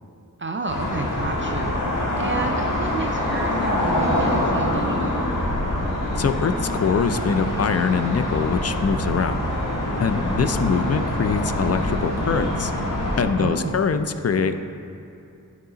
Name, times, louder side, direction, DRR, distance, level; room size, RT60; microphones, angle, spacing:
voice 1, 0.4-1.8 2.2-5.2 10.1-10.5 13.4-13.8, right 4 dB, 35° right, 5 dB, 0.4 m, -31 dB
sound 1, 0.7-13.2, left 1 dB, 70° left, 1.4 m, -25 dB
voice 2, 6.2-9.4 10.0-12.7 13.2-14.6, left 5 dB, 50° left, 9 dB, 0.4 m, -23 dB
9.5 x 4.8 x 3.9 m, 2.7 s
wide cardioid pair, 65°, 34 cm